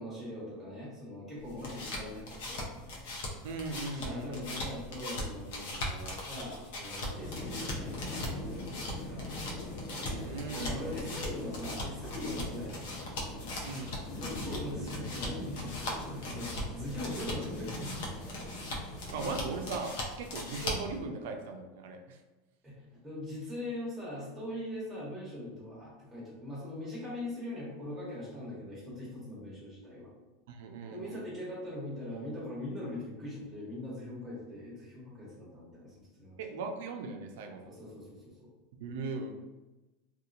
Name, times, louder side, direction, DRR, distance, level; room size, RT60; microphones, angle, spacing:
voice 1, 0.0-2.7 4.0-9.3 10.5-13.1 14.2-18.0 22.6-30.1 30.9-36.4 37.6-38.5, left 1 dB, 5° right, -7 dB, 1.0 m, -41 dB
sound 1, 1.4-21.0, left 1 dB, 75° left, 0.7 m, -40 dB
voice 2, 3.4-4.6 10.0-10.9 13.6-14.0 19.1-22.2 30.5-31.2 36.4-37.7 38.8-39.3, right 3 dB, 75° right, 4 dB, 0.4 m, -39 dB
sound 2, 7.1-19.6, left 1 dB, 50° left, 1.0 m, -42 dB
2.8 x 2.3 x 2.5 m, 1.1 s
supercardioid pair, 145°, 0 cm